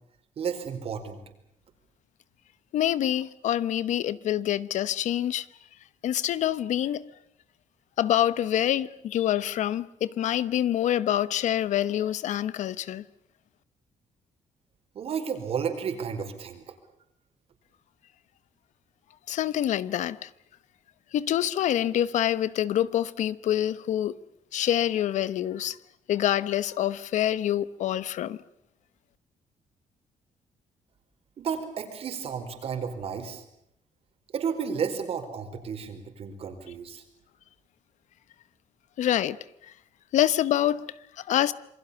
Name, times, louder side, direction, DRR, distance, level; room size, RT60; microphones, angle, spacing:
voice 1, 0.4-1.2 14.9-16.6 31.4-33.4 34.3-37.0, right 6 dB, 50° right, 4.7 m, -32 dB
voice 2, 2.7-5.5 6.0-7.1 8.0-13.0 19.3-20.3 21.1-24.2 24.5-25.8 26.1-28.4 39.0-39.4 40.1-41.5, left 11 dB, 70° left, 1.0 m, -26 dB
27.5 x 22.5 x 7.1 m
cardioid pair, 155°, 13 cm